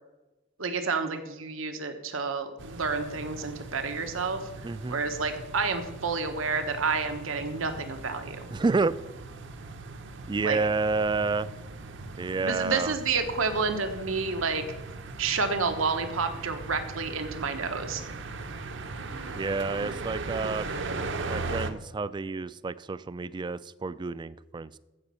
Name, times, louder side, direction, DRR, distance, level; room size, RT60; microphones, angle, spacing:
voice 1, 0.6-4.4 4.9-8.5 10.4-10.6 12.4-14.6 15.2-18.0, right 4 dB, 90° right, 7 dB, 1.2 m, -29 dB
sound 1, 2.6-21.7, right 3 dB, 65° right, 0.8 m, -39 dB
voice 2, 4.6-5.0 8.5-9.0 10.3-11.5 12.2-13.0 19.3-20.8 21.2-24.8, right 3 dB, 20° right, 16 dB, 0.3 m, -29 dB
15.0 x 5.2 x 6.8 m, 1.1 s
head